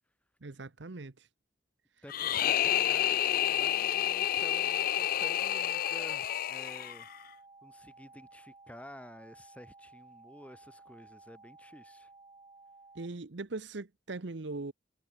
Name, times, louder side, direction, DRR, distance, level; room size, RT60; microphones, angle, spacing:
voice 1, 0.4-1.3 12.9-14.7, right 3 dB, 65° right, 0.9 m, -40 dB
voice 2, 2.0-7.1 7.6-12.1, equal, 5° left, 4.0 m, -51 dB
sound 1, 2.1-7.2, left 11 dB, 50° left, 0.4 m, -29 dB
sound 2, 3.1-13.1, right 3 dB, 25° right, 2.9 m, -56 dB
head